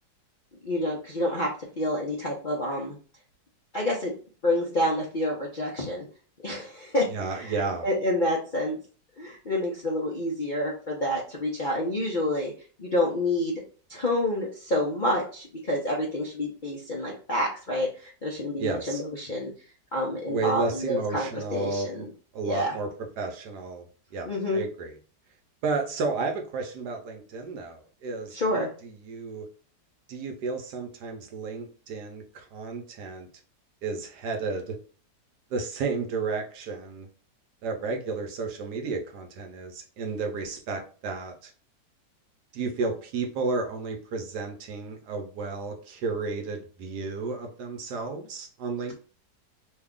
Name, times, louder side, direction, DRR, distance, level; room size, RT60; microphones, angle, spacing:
voice 1, 0.6-1.5 1.8-3.0 3.7-4.1 4.4-6.0 6.4-7.5 7.8-8.8 9.2-12.5 12.8-13.6 13.9-19.5 19.9-22.1 22.4-22.7 24.2-24.6 28.3-28.7, left 1 dB, 55° left, -3 dB, 0.5 m, -28 dB
voice 2, 7.1-7.9 18.6-19.0 20.3-22.9 23.2-23.9 24.1-24.9 25.6-29.5 30.1-33.3 33.8-34.8 35.5-37.1 37.6-41.5 42.5-48.9, right 4 dB, 70° right, 3 dB, 1.2 m, -32 dB
3.2 x 2.3 x 3.6 m, 0.39 s
omnidirectional pair, 1.9 m